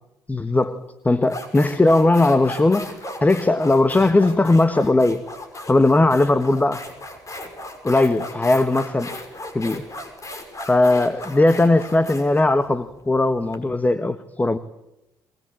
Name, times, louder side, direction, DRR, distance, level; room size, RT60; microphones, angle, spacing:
voice 1, 0.3-5.2 5.7-6.9 7.8-9.1 9.5-9.9 10.7-14.6, left 2 dB, 20° left, 12 dB, 1.3 m, -18 dB
sound 1, 0.6-0.8 1.2-13.6, left 1 dB, 35° left, 5.9 m, -36 dB
22.5 x 20.5 x 8.9 m, 0.90 s
hypercardioid pair, 55°, 9 cm